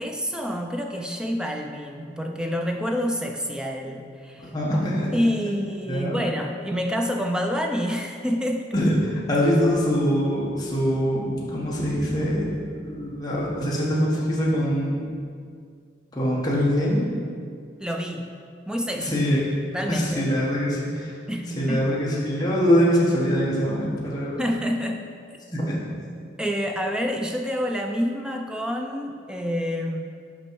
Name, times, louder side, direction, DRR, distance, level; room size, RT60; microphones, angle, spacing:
voice 1, 0.0-4.5 5.1-8.7 17.8-18.3 18.7-19.2 19.7-20.3 21.3-21.9 24.4-25.1 26.4-30.0, equal, 5° right, 3 dB, 0.4 m, -28 dB
voice 2, 4.5-5.1 5.5-5.6 5.9-6.2 8.7-15.0 16.1-17.1 19.0-19.4 19.9-21.1 21.6-24.4 25.5-25.8, equal, 20° left, -6 dB, 1.2 m, -23 dB
6.1 x 5.3 x 4.6 m, 2.2 s
head